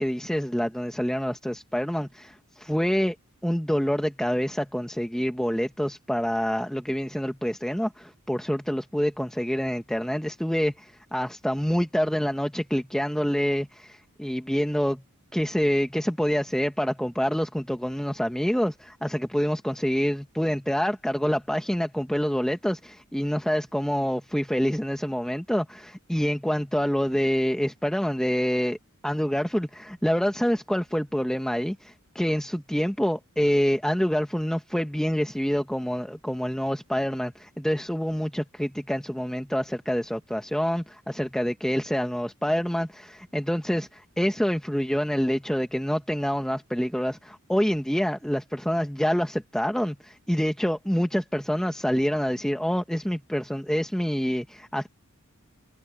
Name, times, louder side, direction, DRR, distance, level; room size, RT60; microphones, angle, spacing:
voice 1, 0.0-3.1 3.4-15.0 15.3-28.8 29.0-54.9, equal, 5° left, 1.0 m, -26 dB
head